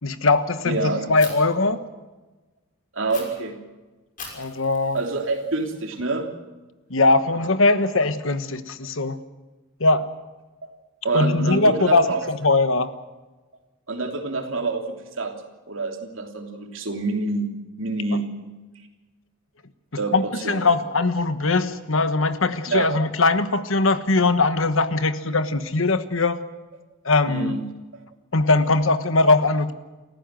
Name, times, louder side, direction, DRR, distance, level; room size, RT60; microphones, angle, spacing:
voice 1, 0.0-1.8 4.3-5.0 6.9-9.2 9.8-10.1 11.1-12.9 20.1-26.4 27.0-27.6 28.3-29.7, left 3 dB, 75° left, 11 dB, 1.3 m, -20 dB
voice 2, 0.6-1.1 2.9-3.6 4.9-6.3 10.6-10.7 11.0-12.2 13.9-15.3 15.7-17.5 17.8-18.3 20.0-20.7 22.7-22.9 27.3-27.6, right 3 dB, 70° right, 3 dB, 3.2 m, -27 dB
Fire, 1.2-1.3 3.1-3.2 4.2-6.1, left 5 dB, 40° left, 6.1 m, -41 dB
29.0 x 15.0 x 7.7 m, 1.2 s
head